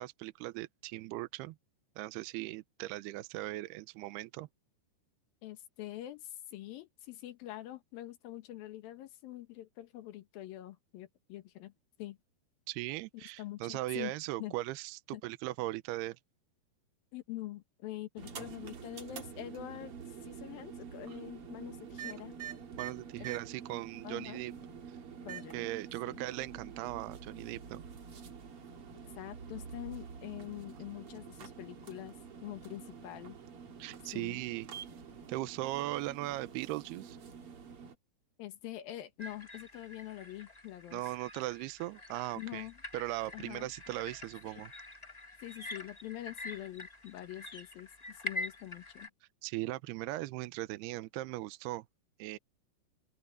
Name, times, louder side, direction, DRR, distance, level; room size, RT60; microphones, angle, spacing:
voice 1, 0.0-1.6 2.0-4.5 12.7-16.2 22.8-24.5 25.5-27.8 33.8-34.7 35.3-37.2 40.9-42.7 42.9-44.7 49.4-51.8 52.2-52.4, right 18 dB, 80° right, 2.7 m, -38 dB
voice 2, 5.4-11.7 12.0-12.2 13.1-14.1 14.4-14.6 15.1-15.2 17.1-19.9 20.2-22.4 23.2-23.3 24.0-24.4 25.2-25.7 26.0-26.2 29.2-33.4 34.1-34.4 38.4-41.0 42.4-42.8 43.3-43.7 44.4-44.7 45.4-49.1, left 14 dB, 65° left, 2.8 m, -45 dB
sound 1, 18.2-37.9, right 7 dB, 40° right, 2.5 m, -47 dB
sound 2, 39.2-49.1, left 2 dB, 20° left, 0.9 m, -46 dB
open air
omnidirectional pair, 4.8 m